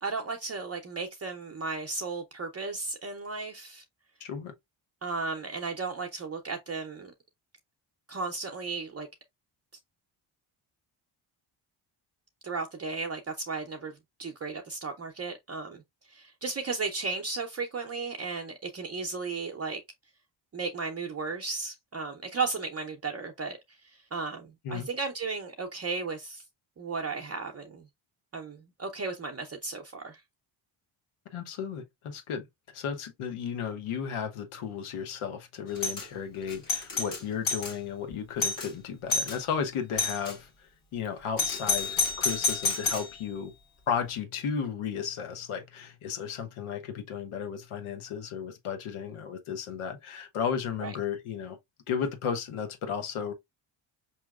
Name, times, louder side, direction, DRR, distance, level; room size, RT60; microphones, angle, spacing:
voice 1, 0.0-3.8 5.0-7.1 8.1-9.1 12.4-13.9 14.2-15.8 16.1-19.8 20.5-23.6 24.1-26.4 26.8-27.8 28.3-30.2 50.8-50.9, right 4 dB, 30° right, 0.6 m, -35 dB
voice 2, 4.2-4.5 24.6-24.9 31.3-32.4 32.7-43.5 43.9-51.6 51.9-53.3, left 7 dB, 80° left, 1.0 m, -34 dB
Doorbell, 35.8-36.1 36.5-37.7 38.1-38.2 38.4-38.7 39.1-39.4 40.0-40.3 41.4-43.1, left 3 dB, 40° left, 1.6 m, -29 dB
4.9 x 2.9 x 2.3 m
cardioid pair, 75°, 50 cm